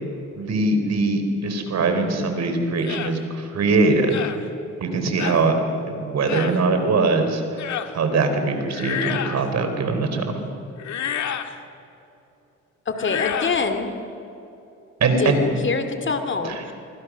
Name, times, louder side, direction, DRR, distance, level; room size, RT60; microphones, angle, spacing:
voice 1, 0.3-4.1 4.8-5.6 6.0-7.4 7.9-10.4 15.0-15.4 16.4-16.5, right 3 dB, 60° right, 6 dB, 4.3 m, -22 dB
sound 1, 2.8-3.1 4.1-4.4 5.2-5.4 6.3-6.6 7.6-7.9 8.7-9.4 10.8-11.5 12.9-13.6, left 9 dB, 70° left, 1.8 m, -29 dB
voice 2, 12.9-13.9 15.2-16.7, left 4 dB, 40° left, 7 dB, 2.6 m, -25 dB
26.0 x 24.0 x 6.4 m, 2.9 s
cardioid pair, 90°, 30 cm